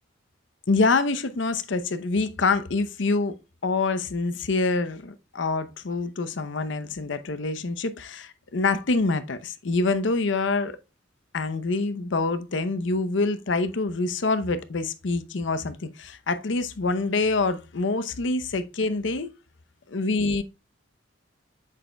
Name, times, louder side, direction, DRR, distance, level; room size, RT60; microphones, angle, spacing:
voice 1, 0.7-3.3 3.6-10.7 11.3-19.3 19.9-20.4, left 3 dB, 70° left, 0.7 m, -26 dB
7.4 x 6.4 x 2.2 m
head